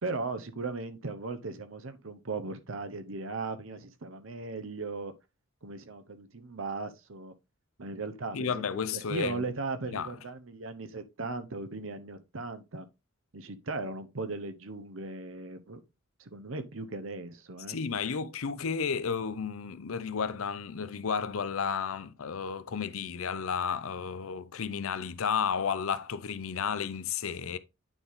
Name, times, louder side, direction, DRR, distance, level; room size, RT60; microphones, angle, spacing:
voice 1, 0.0-5.1 5.6-7.3 7.8-8.6 8.9-12.9 13.3-15.8 16.2-17.8, right 3 dB, 70° right, 1.0 m, -37 dB
voice 2, 8.3-9.5 9.9-10.2 17.7-27.6, left 6 dB, 90° left, 0.6 m, -32 dB
9.0 x 4.0 x 3.6 m
head